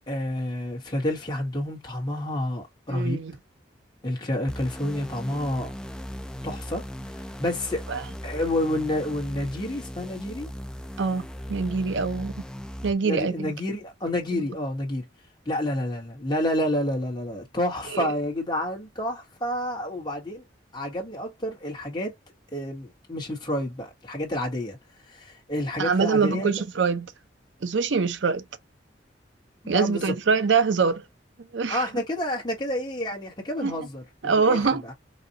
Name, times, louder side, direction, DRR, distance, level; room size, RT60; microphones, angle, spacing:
voice 1, 0.1-3.2 4.0-5.7 6.4-6.9 7.4-7.8 8.2-10.5 13.0-15.0 15.4-20.4 20.7-22.1 22.5-24.8 25.1-26.5 29.6-30.1 31.7-34.9, left 1 dB, 25° left, 1.3 m, -29 dB
voice 2, 2.9-3.3 7.9-8.0 11.0-11.2 11.5-12.4 12.8-13.5 14.3-14.4 17.9-18.1 25.8-27.1 27.6-28.4 29.7-31.0 31.5-31.8 33.6-33.7 34.2-34.8, right 5 dB, 80° right, 0.6 m, -24 dB
sound 1, 4.5-12.9, equal, 5° left, 0.3 m, -38 dB
4.1 x 2.3 x 2.7 m
head